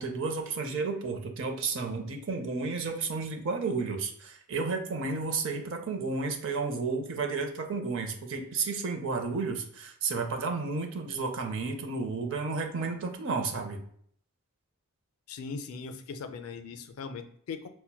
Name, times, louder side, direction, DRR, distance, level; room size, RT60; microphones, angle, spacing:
voice 1, 0.0-13.8, right 4 dB, 60° right, 4 dB, 0.6 m, -32 dB
voice 2, 15.3-17.7, left 5 dB, 75° left, 9 dB, 0.4 m, -39 dB
5.6 x 2.1 x 2.2 m, 0.64 s
head